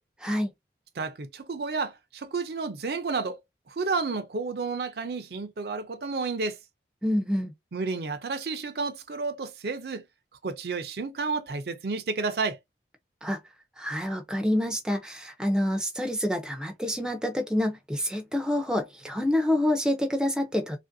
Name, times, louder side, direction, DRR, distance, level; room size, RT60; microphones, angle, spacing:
voice 1, 1.0-3.4 3.7-6.6 7.7-10.0 10.4-12.6, right 4 dB, 60° right, 0.5 m, -31 dB
voice 2, 7.0-7.5 13.2-13.4 13.8-20.8, left 1 dB, 5° right, 0.4 m, -27 dB
2.9 x 2.5 x 2.6 m
head